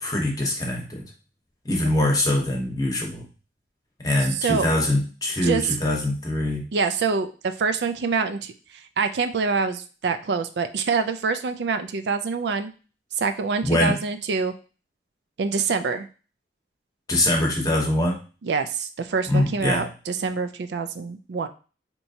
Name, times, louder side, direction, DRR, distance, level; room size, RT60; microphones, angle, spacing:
voice 1, 0.0-1.0 1.6-3.2 4.0-6.6 13.6-14.0 17.1-18.2 19.3-19.9, left 1 dB, 20° left, 0 dB, 0.9 m, -23 dB
voice 2, 4.3-4.7 5.4-5.7 6.7-12.7 13.2-14.5 15.4-16.1 18.4-21.5, right 5 dB, 70° right, 9 dB, 0.4 m, -25 dB
4.4 x 2.9 x 2.7 m, 0.35 s
head